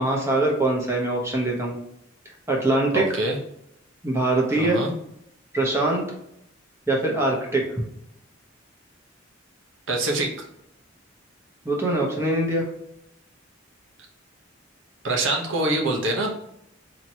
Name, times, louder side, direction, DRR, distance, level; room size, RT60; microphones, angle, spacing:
voice 1, 0.0-1.8 2.5-3.1 4.0-4.8 5.5-6.0 6.9-7.6 11.6-12.7, right 2 dB, 15° right, -2 dB, 0.9 m, -23 dB
voice 2, 2.9-3.4 4.5-4.9 9.9-10.5 15.0-16.3, right 2 dB, 75° right, 1 dB, 0.9 m, -25 dB
4.4 x 2.9 x 2.8 m, 0.78 s
head